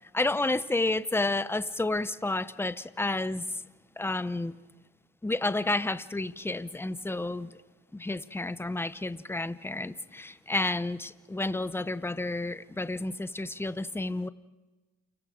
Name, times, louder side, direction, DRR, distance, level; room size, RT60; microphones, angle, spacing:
voice 1, 0.1-3.6 4.0-4.6 5.2-7.5 7.9-14.3, left 2 dB, 10° left, 0.7 m, -30 dB
29.5 x 25.0 x 5.1 m
cardioid pair, 90°, 30 cm